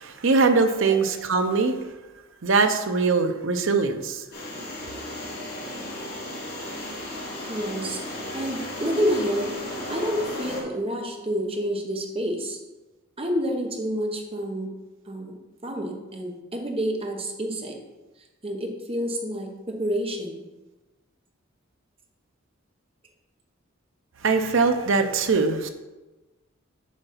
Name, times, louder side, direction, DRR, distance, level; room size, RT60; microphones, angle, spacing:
voice 1, 0.0-1.7 2.4-4.2 24.2-25.7, right 4 dB, 70° right, 7 dB, 0.7 m, -22 dB
sound 1, 4.3-10.6, left 1 dB, 50° left, 2.0 m, -35 dB
voice 2, 7.5-9.5 9.9-12.6 13.2-14.7 15.1-17.8 18.4-20.5, equal, 30° right, 2 dB, 1.1 m, -29 dB
7.4 x 4.0 x 5.8 m, 1.1 s
head